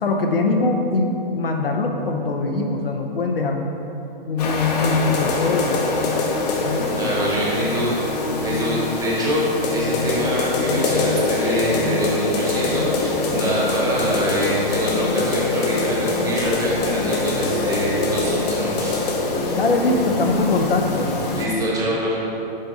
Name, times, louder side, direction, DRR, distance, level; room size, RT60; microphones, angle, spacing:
voice 1, 0.0-3.7 4.3-5.7 6.6-7.1 19.5-21.1, left 3 dB, 75° left, 3 dB, 0.9 m, -22 dB
sound 1, 4.4-21.5, left 3 dB, 45° left, 0.9 m, -23 dB
voice 2, 6.9-9.4 9.7-19.1 21.3-22.2, equal, 10° right, -5 dB, 1.1 m, -25 dB
6.7 x 3.5 x 5.5 m, 3.0 s
hypercardioid pair, 135°, 29 cm